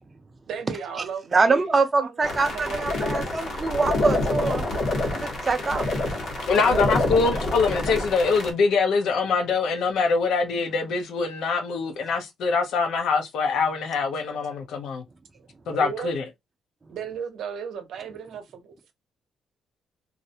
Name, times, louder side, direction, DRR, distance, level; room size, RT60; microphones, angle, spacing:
voice 1, 0.5-1.7 2.0-3.4 6.6-6.9 15.8-16.1 16.9-18.9, right 7 dB, 75° right, 0.6 m, -35 dB
voice 2, 1.3-4.6 5.1-5.9, right 4 dB, 25° right, 0.4 m, -24 dB
sound 1, 2.2-8.5, left 2 dB, 60° left, 1.1 m, -27 dB
voice 3, 6.5-15.0 15.7-16.2, left 4 dB, 80° left, 0.6 m, -24 dB
2.4 x 2.0 x 2.6 m
cardioid pair, 135°, 0 cm